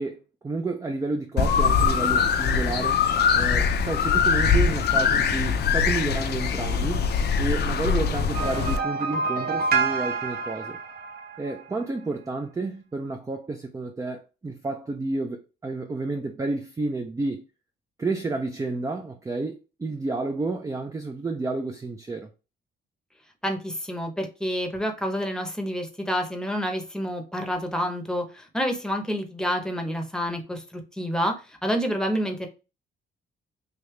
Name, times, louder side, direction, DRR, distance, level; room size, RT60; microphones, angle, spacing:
voice 1, 0.0-3.0 3.3-7.1 7.4-10.8 11.4-17.5 18.0-22.3, right 3 dB, 15° right, 0.4 m, -30 dB
sound 1, 1.4-8.8, left 6 dB, 55° left, 0.5 m, -22 dB
sound 2, 8.3-11.7, right 4 dB, 50° right, 0.9 m, -28 dB
voice 2, 23.4-31.3 31.6-32.5, equal, 5° left, 0.8 m, -28 dB
3.3 x 2.7 x 3.2 m
cardioid pair, 90°, 20 cm